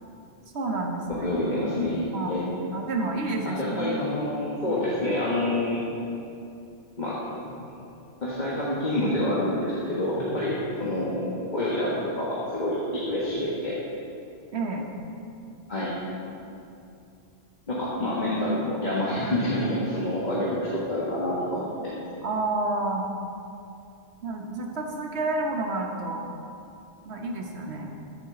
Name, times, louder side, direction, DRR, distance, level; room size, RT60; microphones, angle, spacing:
voice 1, 0.5-1.3 2.1-2.4 2.7-4.0 4.7-4.8 14.5-14.9 22.2-23.0 24.2-26.2 27.0-27.9, right 2 dB, 70° right, 1 dB, 1.4 m, -29 dB
voice 2, 1.2-2.5 3.6-5.8 7.0-7.2 8.2-13.8 15.7-15.9 17.7-22.0, left 1 dB, 40° left, -7 dB, 1.6 m, -27 dB
14.0 x 7.3 x 3.8 m, 2.6 s
omnidirectional pair, 1.2 m